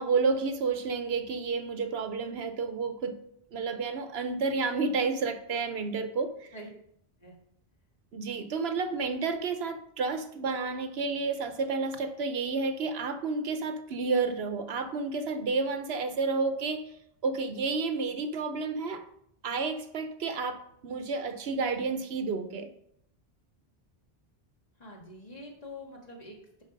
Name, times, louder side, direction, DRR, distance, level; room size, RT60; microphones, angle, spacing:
voice 1, 0.0-3.2 3.5-6.5 8.1-16.9 17.2-19.1 19.4-22.7, right 4 dB, 75° right, 9 dB, 1.0 m, -30 dB
voice 2, 24.8-26.6, left 1 dB, 40° left, -2 dB, 2.1 m, -45 dB
10.5 x 4.6 x 5.2 m, 0.72 s
omnidirectional pair, 1.1 m